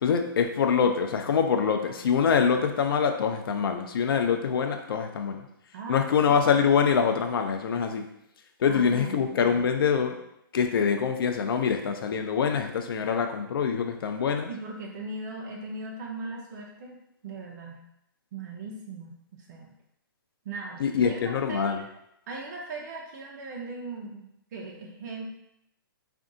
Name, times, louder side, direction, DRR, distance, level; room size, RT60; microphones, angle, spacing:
voice 1, 0.0-5.4 5.9-8.0 8.6-10.2 10.5-14.5 20.8-21.8, left 6 dB, 80° left, 5 dB, 0.4 m, -25 dB
voice 2, 5.7-6.6 8.7-9.7 14.5-17.0 17.2-17.8 18.3-19.1 19.5-19.7 20.4-21.9 22.3-24.3 24.5-25.3, right 3 dB, 50° right, -1 dB, 0.5 m, -39 dB
2.5 x 2.3 x 3.7 m, 0.78 s
hypercardioid pair, 155°, 12 cm